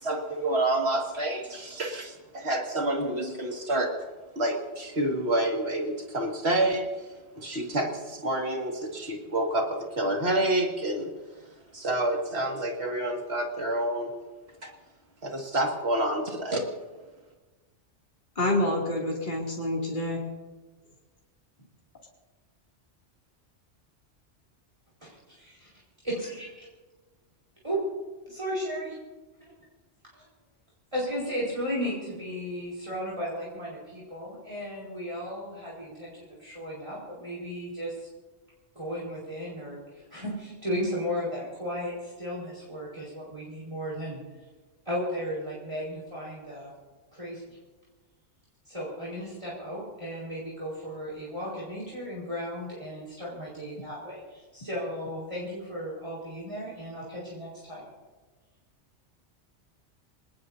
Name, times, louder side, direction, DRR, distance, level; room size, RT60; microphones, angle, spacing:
voice 1, 0.0-3.9 4.4-6.9 7.4-11.1 11.7-14.1 14.6-14.7 15.2-16.7, right 1 dB, 60° right, 1 dB, 2.6 m, -28 dB
voice 2, 18.4-20.2, left 1 dB, 40° left, -3 dB, 3.1 m, -27 dB
voice 3, 26.0-26.7 27.6-27.8 28.3-28.9 30.2-30.3 30.9-38.1 38.8-44.2 44.9-46.7 47.1-47.4 48.7-57.8, equal, 25° right, -6 dB, 5.2 m, -35 dB
26.0 x 19.5 x 2.8 m, 1.3 s
omnidirectional pair, 1.2 m